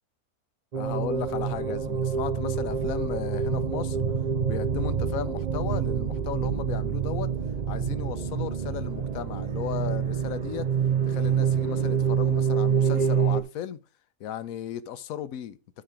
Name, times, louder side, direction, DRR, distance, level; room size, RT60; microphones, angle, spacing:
voice 1, 0.7-4.0 4.4-7.3 7.7-10.7 11.0-13.8 14.2-15.6, left 10 dB, 70° left, 1.1 m, -35 dB
sound 1, 0.7-13.4, right 7 dB, 50° right, 0.5 m, -27 dB
10.5 x 4.2 x 4.9 m
omnidirectional pair, 1.6 m